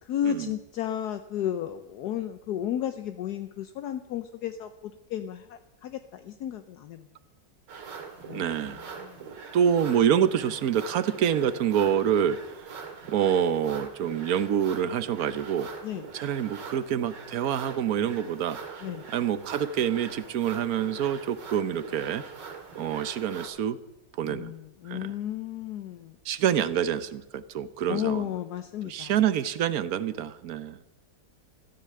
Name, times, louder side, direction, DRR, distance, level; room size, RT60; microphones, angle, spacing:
voice 1, 0.0-7.1 8.3-9.2 10.1-10.5 15.8-16.0 18.8-19.1 24.3-26.1 27.9-29.2, left 10 dB, 70° left, 9 dB, 1.2 m, -33 dB
sound 1, 7.7-23.5, right 5 dB, 90° right, 2.5 m, -43 dB
voice 2, 8.3-8.8 9.5-12.4 13.1-15.7 16.1-18.6 19.1-22.2 22.8-23.8 24.2-24.5 24.9-25.1 26.2-28.2 28.8-30.8, right 9 dB, 60° right, 14 dB, 1.2 m, -26 dB
14.0 x 13.5 x 7.7 m, 0.96 s
omnidirectional pair, 1.9 m